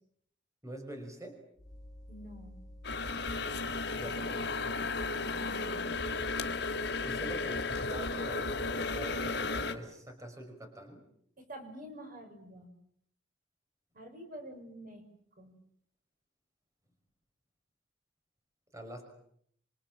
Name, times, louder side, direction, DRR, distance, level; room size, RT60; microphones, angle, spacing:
voice 1, 0.6-1.4 3.9-4.8 7.0-11.0 18.7-19.0, right 1 dB, 15° right, 4 dB, 5.6 m, -45 dB
sound 1, 1.6-8.5, left 1 dB, 20° left, 2.6 m, -50 dB
voice 2, 2.1-2.5 5.2-5.9 11.4-12.7 13.9-15.0 15.4-15.5, equal, 45° right, 5 dB, 6.1 m, -48 dB
sound 2, 2.8-9.7, left 3 dB, 60° left, 3.1 m, -34 dB
27.5 x 25.5 x 7.6 m, 0.68 s
head